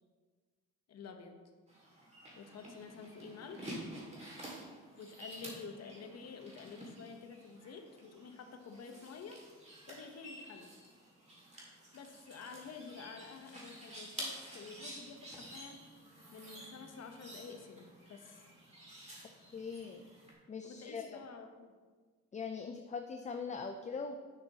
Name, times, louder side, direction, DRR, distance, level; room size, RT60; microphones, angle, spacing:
voice 1, 0.9-1.4 2.4-3.8 5.0-9.4 9.9-10.7 11.9-15.8 16.3-18.4 20.6-21.7, left 5 dB, 55° left, 5 dB, 1.0 m, -49 dB
sound 1, 1.7-20.3, right 1 dB, 20° right, 2.3 m, -50 dB
voice 2, 19.5-20.0 20.5-21.2 22.3-24.2, left 5 dB, 25° left, 5 dB, 0.5 m, -41 dB
10.5 x 5.9 x 2.9 m, 1.4 s
cardioid pair, 90°, 30 cm